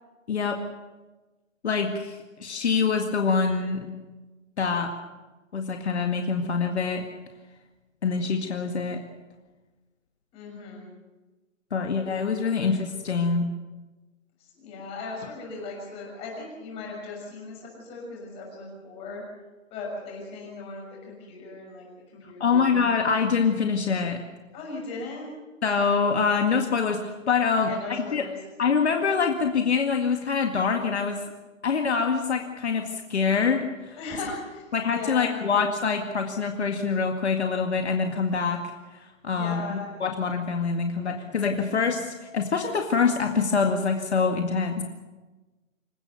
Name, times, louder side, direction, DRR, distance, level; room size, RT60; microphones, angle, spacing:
voice 1, 0.3-0.6 1.6-3.9 4.6-4.9 5.5-7.1 8.0-9.0 11.7-13.5 22.4-24.2 25.6-28.3 28.6-31.2 31.6-34.0 34.7-38.6 38.9-44.8, left 5 dB, 55° left, 4 dB, 2.1 m, -25 dB
voice 2, 10.3-10.9 12.0-12.4 14.4-19.2 19.7-22.8 24.5-25.3 27.5-28.4 34.0-35.4 39.3-39.9, left 3 dB, 15° left, -1 dB, 6.2 m, -38 dB
27.0 x 16.0 x 7.0 m, 1.2 s
hypercardioid pair, 160°, 40 cm